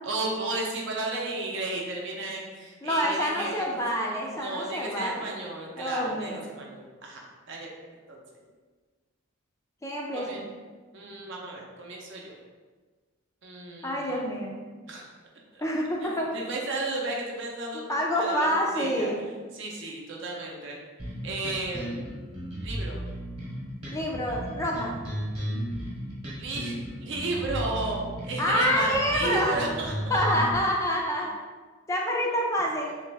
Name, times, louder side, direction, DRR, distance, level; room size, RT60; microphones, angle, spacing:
voice 1, 0.0-3.6 4.4-7.2 7.5-7.7 8.1-8.2 10.1-10.4 10.9-12.4 13.4-14.2 14.9-15.0 15.5-15.6 16.0-17.8 18.2-18.5 18.7-19.1 19.5-20.8 21.2-22.0 22.6-23.0 26.4-26.7 27.0-29.9, right 2 dB, 55° right, -1 dB, 0.7 m, -33 dB
voice 2, 2.8-5.3 5.8-6.4 9.8-10.4 13.8-14.5 15.6-16.3 17.7-19.2 23.9-24.9 28.4-29.7 30.1-31.3 31.9-33.0, equal, 15° left, -2 dB, 0.4 m, -27 dB
sound 1, 21.0-30.6, equal, 25° right, 1.0 m, -34 dB
3.3 x 3.0 x 3.3 m, 1.4 s
head